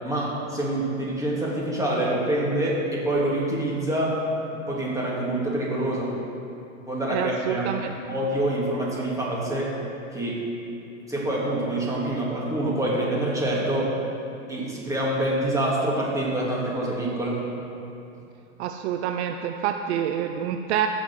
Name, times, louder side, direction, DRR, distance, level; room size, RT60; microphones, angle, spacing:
voice 1, 0.0-4.2 4.7-6.2 6.8-9.8 10.1-10.5 11.1-13.9 14.5-17.4, right 1 dB, 10° right, -5 dB, 2.9 m, -26 dB
voice 2, 7.1-7.9 18.6-20.9, right 9 dB, 55° right, 6 dB, 0.7 m, -27 dB
15.5 x 6.2 x 6.1 m, 2.7 s
hypercardioid pair, 120°, 40 cm